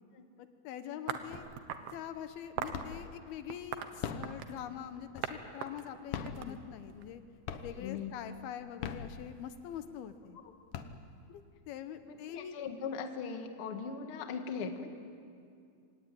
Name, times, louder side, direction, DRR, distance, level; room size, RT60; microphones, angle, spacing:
voice 1, 0.4-1.5 1.9-7.2 7.6-10.4 11.3-12.6, left 9 dB, 80° left, 10 dB, 2.9 m, -44 dB
sound 1, 1.1-2.0 2.6-2.9 3.5-4.6 5.2-5.4 5.6-7.0, right 9 dB, 85° right, 3.1 m, -39 dB
sound 2, 1.3-1.8 2.2-3.2 3.8-5.6 6.0-7.2 7.5-8.0 8.6-9.7 10.2-10.3 10.5-11.4, left 7 dB, 65° left, 2.3 m, -41 dB
voice 2, 7.8-8.1 10.4-10.5 12.0-14.9, left 6 dB, 50° left, 5 dB, 2.0 m, -39 dB
26.5 x 18.0 x 9.1 m, 2.4 s
omnidirectional pair, 4.4 m